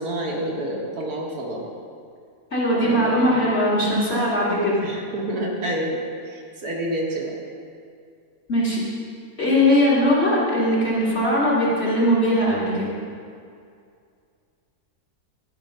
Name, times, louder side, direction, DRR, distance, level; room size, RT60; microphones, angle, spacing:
voice 1, 0.0-1.6 2.8-3.4 4.8-6.0 6.3-7.3, right 1 dB, 70° right, -2 dB, 1.7 m, -28 dB
voice 2, 2.5-4.8 8.5-8.8 9.4-12.9, equal, 40° left, -7 dB, 2.3 m, -20 dB
11.5 x 5.2 x 5.4 m, 2.3 s
omnidirectional pair, 1.7 m